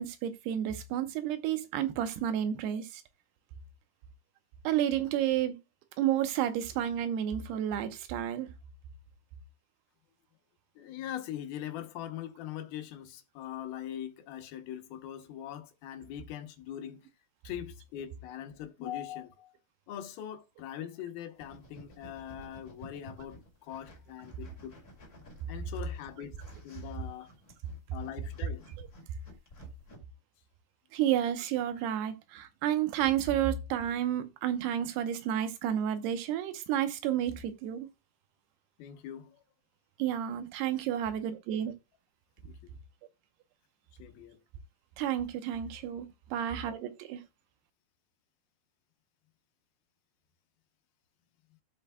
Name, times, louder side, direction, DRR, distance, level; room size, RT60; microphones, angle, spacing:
voice 1, 0.0-2.9 4.6-5.6 6.0-8.5 30.9-37.9 40.0-41.7 45.0-47.2, right 10 dB, 90° right, 3.0 m, -31 dB
voice 2, 10.8-17.1 17.4-19.5 19.9-24.8 25.5-26.4 26.6-27.3 27.9-28.7 38.8-39.3 42.4-42.6 44.0-44.4, left 11 dB, 75° left, 2.7 m, -42 dB
sound 1, 21.4-30.0, equal, 25° left, 2.7 m, -54 dB
13.5 x 7.9 x 2.3 m
omnidirectional pair, 4.6 m